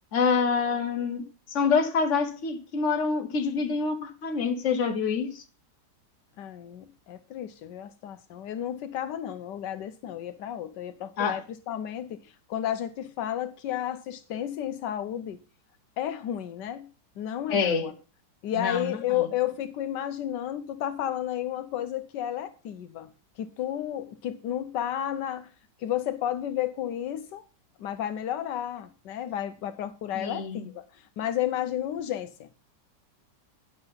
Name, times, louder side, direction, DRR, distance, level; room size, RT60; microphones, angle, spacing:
voice 1, 0.1-1.2 1.5-5.4 11.2-11.4 17.5-17.9 18.6-19.0 30.1-30.7, left 5 dB, 45° left, 1.4 m, -26 dB
voice 2, 6.4-15.4 16.0-16.9 17.2-17.9 18.4-25.5 25.8-27.4 27.8-32.7, left 11 dB, 80° left, 1.3 m, -32 dB
9.7 x 6.7 x 5.6 m
omnidirectional pair, 1.9 m